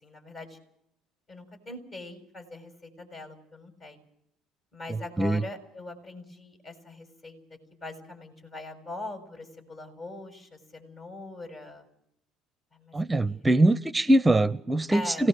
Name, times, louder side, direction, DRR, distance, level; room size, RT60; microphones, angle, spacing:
voice 1, 0.0-0.6 1.3-4.0 4.7-7.4 7.8-11.8 12.7-13.0 13.2-13.4 14.9-15.3, left 2 dB, 45° left, 5 dB, 6.8 m, -42 dB
voice 2, 4.9-5.4 12.9-15.3, right 1 dB, 15° right, 17 dB, 0.7 m, -23 dB
26.0 x 18.0 x 6.6 m, 0.73 s
hypercardioid pair, 65°, 0 cm